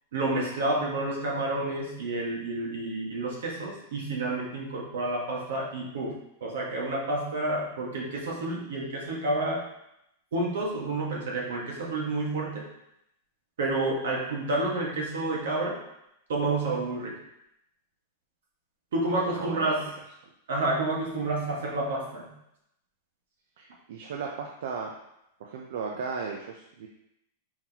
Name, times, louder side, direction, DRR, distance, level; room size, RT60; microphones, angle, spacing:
voice 1, 0.1-9.6 10.3-12.6 13.6-15.8 16.3-17.1 18.9-19.9 20.5-22.3, right 2 dB, 80° right, -3 dB, 1.5 m, -29 dB
voice 2, 19.3-19.7 23.6-24.9 25.4-26.9, right 5 dB, 65° right, 0 dB, 0.5 m, -35 dB
4.4 x 3.9 x 2.8 m, 0.81 s
supercardioid pair, 175°, 0 cm